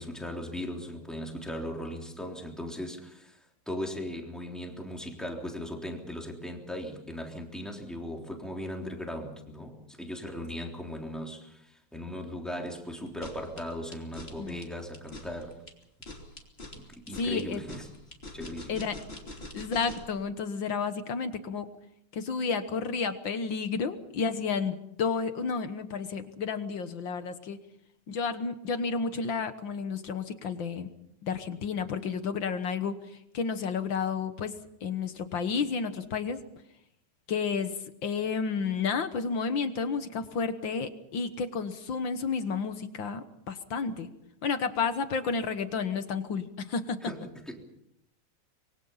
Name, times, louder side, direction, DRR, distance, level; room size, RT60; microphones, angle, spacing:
voice 1, 0.0-3.4 3.6-15.6 16.8-17.9 18.3-18.8 47.0-47.7, left 1 dB, ahead, 1 dB, 3.2 m, -38 dB
sound 1, 13.1-20.2, left 1 dB, 20° left, 3.0 m, -44 dB
voice 2, 17.1-17.6 18.7-19.0 19.5-21.7 22.1-27.6 28.1-30.9 31.2-34.5 34.8-36.4 37.3-44.1 44.4-47.1, left 5 dB, 55° left, 10 dB, 1.5 m, -31 dB
25.0 x 23.0 x 5.7 m, 0.78 s
omnidirectional pair, 3.4 m